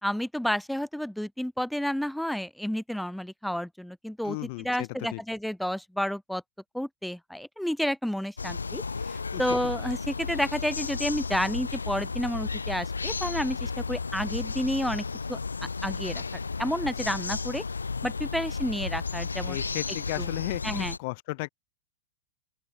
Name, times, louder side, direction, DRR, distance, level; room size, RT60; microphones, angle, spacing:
voice 1, 0.0-6.4 6.7-8.8 9.1-16.2 16.6-17.6 18.0-19.6 20.2-20.3 20.6-20.9, equal, ahead, 3.4 m, -30 dB
voice 2, 4.2-5.2 9.3-9.4 19.5-21.5, left 25 dB, 50° left, 1.3 m, -35 dB
sound 1, 8.4-21.0, left 4 dB, 80° left, 0.6 m, -33 dB
open air
figure-of-eight pair, 90°, 0 cm